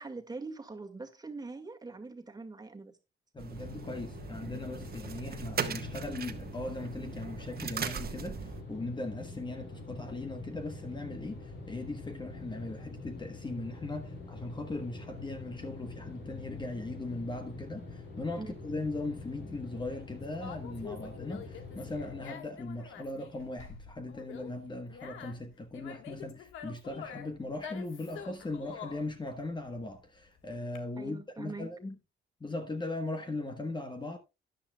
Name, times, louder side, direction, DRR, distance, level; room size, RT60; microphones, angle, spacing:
voice 1, 0.0-3.0 18.4-18.6 31.0-31.7, right 3 dB, 20° right, 1.9 m, -42 dB
voice 2, 3.3-31.9 32.4-34.2, left 2 dB, 25° left, 1.2 m, -39 dB
sound 1, 3.4-8.6, right 7 dB, 50° right, 1.4 m, -39 dB
sound 2, 3.5-22.2, left 2 dB, 65° left, 4.9 m, -45 dB
Conversation, 18.9-30.8, left 7 dB, 85° left, 1.5 m, -47 dB
13.0 x 10.5 x 2.3 m
cardioid pair, 90°, 20 cm